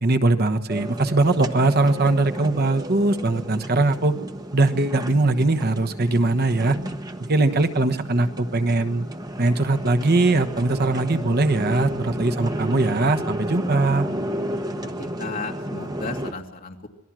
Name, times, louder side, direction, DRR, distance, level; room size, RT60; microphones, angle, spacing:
voice 1, 0.0-4.1 4.5-6.8 7.2-9.1 9.4-14.1, right 2 dB, 50° right, 8 dB, 1.2 m, -21 dB
sound 1, 0.7-16.3, right 1 dB, 20° right, 1.2 m, -32 dB
voice 2, 12.3-12.6 12.9-13.0 14.8-16.9, left 4 dB, 45° left, 2 dB, 2.7 m, -35 dB
26.5 x 19.0 x 6.2 m, 0.97 s
head